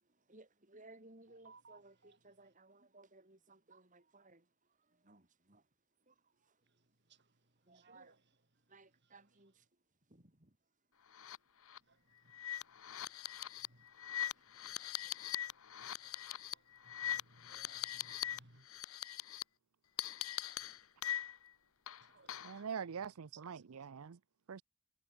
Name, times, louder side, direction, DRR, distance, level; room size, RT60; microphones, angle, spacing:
voice 1, 0.3-4.5 5.0-5.6 6.1-6.2 7.7-8.1 8.7-9.6 10.1-10.5, right 2 dB, 35° right, 3.3 m, -61 dB
voice 2, 1.4-1.8 7.9-8.1 15.0-15.1 17.0-18.6 22.1-22.6, right 3 dB, 50° right, 6.4 m, -62 dB
sound 1, 11.1-11.4 11.7-11.8 12.3-18.4 18.7-19.4 20.0-21.5 21.9-22.6, left 11 dB, 75° left, 0.9 m, -42 dB
voice 3, 22.4-24.2 24.5-24.6, right 6 dB, 80° right, 0.5 m, -44 dB
head